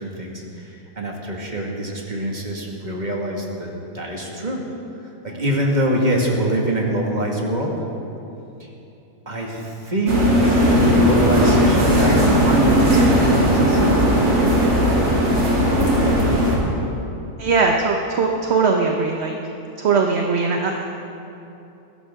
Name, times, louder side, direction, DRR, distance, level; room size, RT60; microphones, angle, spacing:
voice 1, 0.0-4.6 5.0-7.7 8.6-8.7 9.3-10.2 10.8-15.0 15.9-16.4, right 1 dB, 30° right, -1 dB, 2.1 m, -25 dB
sound 1, 10.1-16.6, equal, 90° right, 3.4 m, -17 dB
voice 2, 17.4-19.4 19.8-21.0, right 4 dB, 50° right, 2 dB, 1.1 m, -20 dB
20.5 x 16.0 x 3.7 m, 2.9 s
omnidirectional pair, 1.7 m